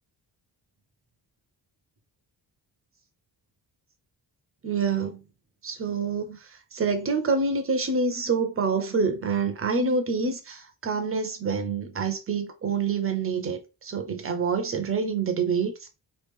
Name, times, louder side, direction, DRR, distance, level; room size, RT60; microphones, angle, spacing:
voice 1, 4.6-5.2 5.6-6.4 6.7-15.9, right 4 dB, 30° right, 0.6 m, -27 dB
3.1 x 2.4 x 3.4 m
wide cardioid pair, 160°, 42 cm